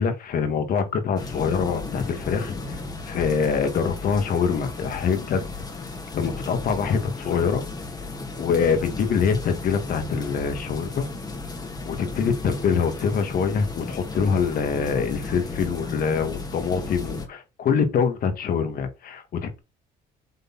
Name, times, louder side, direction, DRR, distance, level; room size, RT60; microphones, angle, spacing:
voice 1, 0.0-2.8 3.1-5.5 6.1-7.6 8.4-11.1 11.9-19.6, left 6 dB, 60° left, 1.8 m, -24 dB
sound 1, 1.2-17.3, left 3 dB, 25° left, 1.8 m, -34 dB
8.0 x 4.0 x 4.1 m
cardioid pair, 110°, 17 cm